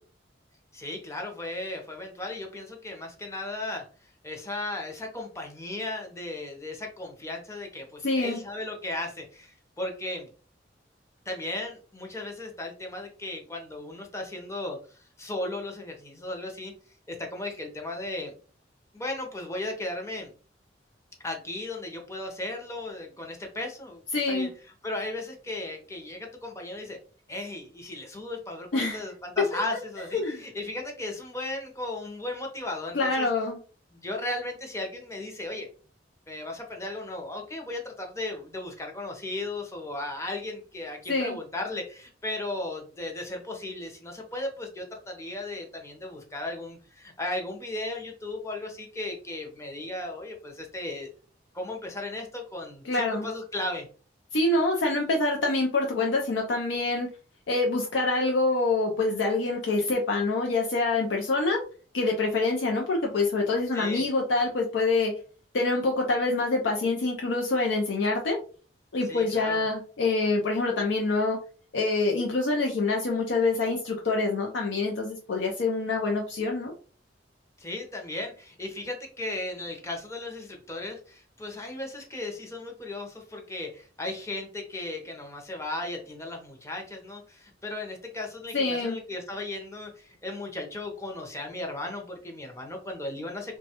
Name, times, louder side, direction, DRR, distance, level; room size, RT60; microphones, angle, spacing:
voice 1, 0.7-3.8 4.2-10.3 11.3-16.7 17.1-18.3 18.9-20.3 21.2-24.0 24.3-24.5 24.8-27.0 27.3-33.3 33.9-35.7 36.3-51.1 51.5-53.9 63.7-64.0 69.0-69.6 77.6-93.6, left 2 dB, 15° left, 2 dB, 0.6 m, -36 dB
voice 2, 8.0-8.4 24.1-24.5 28.7-29.0 30.1-30.4 32.9-33.6 41.1-41.4 52.8-53.3 54.3-57.1 57.5-61.6 61.9-65.1 65.5-68.4 68.9-71.4 71.7-76.7 88.5-89.0, left 3 dB, 75° left, 1 dB, 0.5 m, -26 dB
3.0 x 2.2 x 2.8 m, 0.38 s
head